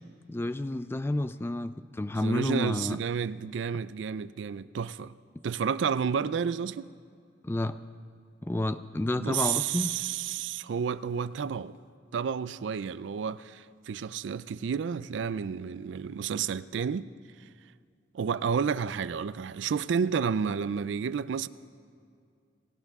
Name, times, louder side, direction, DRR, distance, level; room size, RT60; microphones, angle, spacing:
voice 1, 0.3-3.0 7.4-7.8 8.4-10.0, left 1 dB, 15° left, 0.3 m, -30 dB
voice 2, 2.1-5.1 5.4-6.9 9.2-11.8 12.1-17.1 18.1-21.5, right 6 dB, 75° right, 0.4 m, -31 dB
18.0 x 17.5 x 3.6 m
head